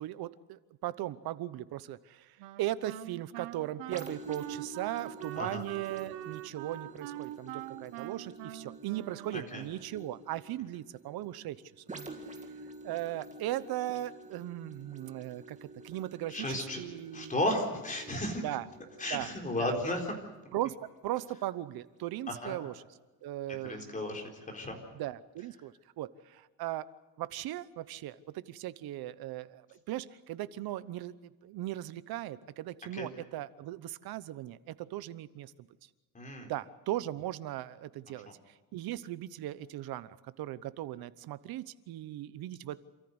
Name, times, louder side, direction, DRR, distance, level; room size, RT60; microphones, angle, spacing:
voice 1, 0.0-2.3 2.6-11.6 12.8-17.4 18.4-18.6 19.1-19.3 19.6-19.7 20.5-20.7 21.0-22.7 23.2-24.0 24.9-26.9 27.2-35.7 36.4-38.3 38.7-42.8, right 14 dB, 55° right, 16 dB, 1.0 m, -38 dB
Wind instrument woodwind instrument, 2.4-9.8, right 15 dB, 80° right, 1.3 m, -43 dB
sound 1, 3.9-21.4 22.0-22.1, right 2 dB, 15° right, 2.2 m, -50 dB
voice 2, 9.3-9.6 16.3-16.8 17.1-18.4 19.0-20.1 22.3-22.6 23.6-24.8 32.9-33.1 36.1-36.5 38.3-38.4, left 1 dB, 20° left, 1 dB, 4.1 m, -34 dB
28.0 x 14.5 x 8.0 m, 1.2 s
cardioid pair, 150°, 44 cm